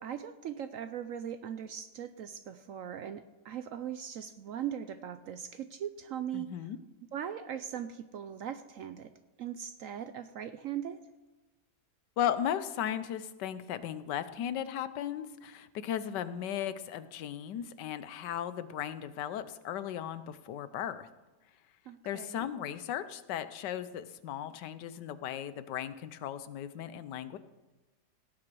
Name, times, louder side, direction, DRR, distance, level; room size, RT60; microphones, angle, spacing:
voice 1, 0.0-6.5 7.1-9.1 9.4-11.0 21.9-22.4, right 9 dB, 70° right, 11 dB, 0.8 m, -39 dB
voice 2, 6.3-6.8 12.2-21.1 22.0-27.4, left 10 dB, 85° left, 13 dB, 1.4 m, -36 dB
17.0 x 8.7 x 4.7 m, 1.2 s
omnidirectional pair, 1.8 m